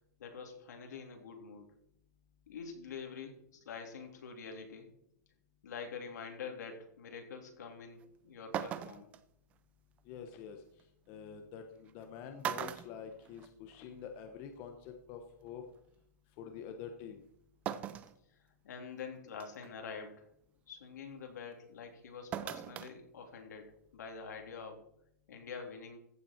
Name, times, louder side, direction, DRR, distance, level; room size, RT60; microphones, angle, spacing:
voice 1, 0.2-1.7 2.5-3.4 3.6-4.9 5.6-9.1 18.6-20.2 20.7-23.7 23.9-24.8 25.3-26.0, left 5 dB, 75° left, 3 dB, 3.0 m, -46 dB
sound 1, 8.0-8.1 8.5-9.2 10.8-10.9 11.9-12.0 12.4-13.8 14.1-14.2 15.5-15.6 17.7-18.2 18.7-18.8 19.4-19.7 22.3-22.9 23.3-23.4, right 10 dB, 15° right, 0.4 m, -39 dB
voice 2, 10.0-10.6 11.1-15.6 16.4-17.2, left 7 dB, 25° left, 5 dB, 1.0 m, -47 dB
14.5 x 7.4 x 4.4 m, 0.73 s
hypercardioid pair, 170°, 10 cm